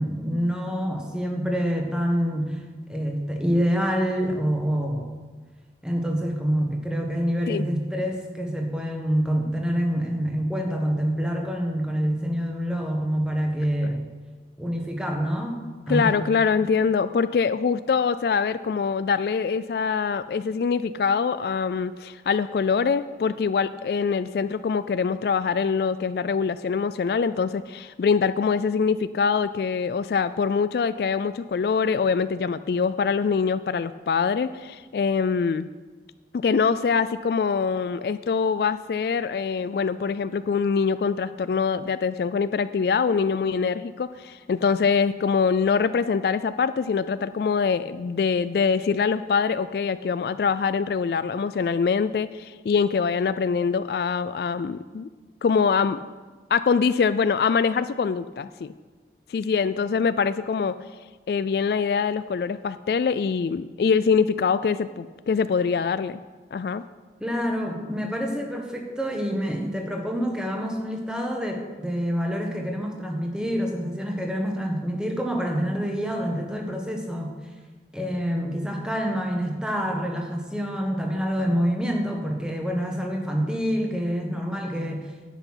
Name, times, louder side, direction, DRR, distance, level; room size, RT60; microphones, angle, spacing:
voice 1, 0.0-2.6 2.9-5.1 5.8-14.1 14.6-16.3 67.2-77.3 77.9-85.0, equal, 5° right, 2 dB, 1.3 m, -27 dB
voice 2, 15.9-35.7 36.4-55.1 55.4-56.0 56.5-58.7 59.3-60.7 61.3-66.2 66.5-66.8, left 5 dB, 60° left, 13 dB, 0.3 m, -24 dB
10.5 x 8.2 x 5.7 m, 1.4 s
head